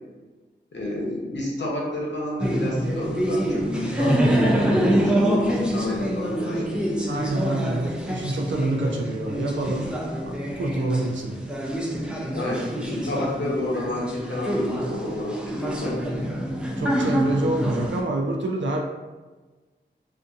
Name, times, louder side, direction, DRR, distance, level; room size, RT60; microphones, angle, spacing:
voice 1, 0.7-7.1 11.9-16.0, left 1 dB, 70° left, -3 dB, 0.8 m, -30 dB
sound 1, 2.4-18.0, right 1 dB, 5° right, 0.4 m, -26 dB
voice 2, 7.1-9.9 10.2-10.3 10.6-11.4 16.8-18.8, right 2 dB, 75° right, 1 dB, 0.4 m, -26 dB
2.5 x 2.5 x 2.5 m, 1.3 s
wide cardioid pair, 65°, 19 cm